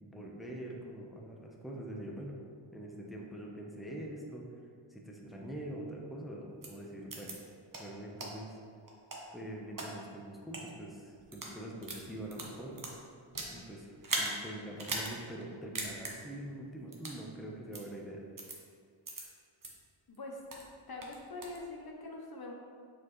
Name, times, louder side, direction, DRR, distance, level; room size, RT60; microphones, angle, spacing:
voice 1, 0.0-2.4 2.7-4.4 4.9-7.4 7.7-8.6 9.3-12.9 13.5-18.2, right 1 dB, ahead, -2 dB, 0.8 m, -44 dB
sound 1, 6.6-6.7 7.1-7.3 7.7-7.8 8.2-8.3 8.9-9.9 10.4-10.6 11.2-11.5 11.8-13.6 14.0-14.3 14.8-15.1 15.4-15.5 15.8-16.1 16.9-17.2 17.7-17.8 18.4-18.6 19.1-19.2 19.6-19.7 20.1-20.7 21.0-21.6, right 2 dB, 40° right, 1.1 m, -38 dB
voice 2, 20.1-20.4 20.9-22.5, left 2 dB, 50° left, 0 dB, 0.8 m, -44 dB
6.2 x 4.9 x 3.1 m, 2.2 s
wide cardioid pair, 70°, 48 cm